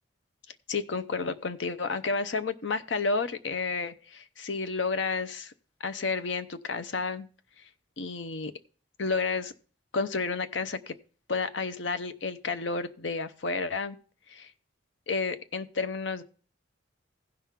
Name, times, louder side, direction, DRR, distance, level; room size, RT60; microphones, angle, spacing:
voice 1, 0.7-5.5 5.8-7.3 8.0-8.5 9.0-9.5 9.9-10.9 11.3-14.0 14.3-14.5 15.1-16.2, left 4 dB, 80° left, 12 dB, 0.7 m, -31 dB
16.0 x 5.8 x 3.6 m, 0.40 s
head